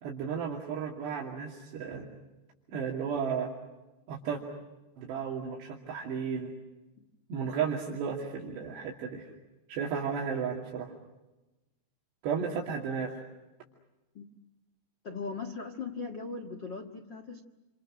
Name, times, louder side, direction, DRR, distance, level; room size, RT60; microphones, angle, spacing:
voice 1, 0.0-2.1 2.7-3.5 4.1-4.4 5.0-6.5 7.3-9.2 9.7-10.9 12.2-13.2, right 6 dB, 75° right, -2 dB, 4.9 m, -33 dB
voice 2, 15.0-17.4, left 4 dB, 65° left, 5 dB, 1.1 m, -39 dB
29.5 x 27.5 x 6.4 m, 1.1 s
omnidirectional pair, 4.9 m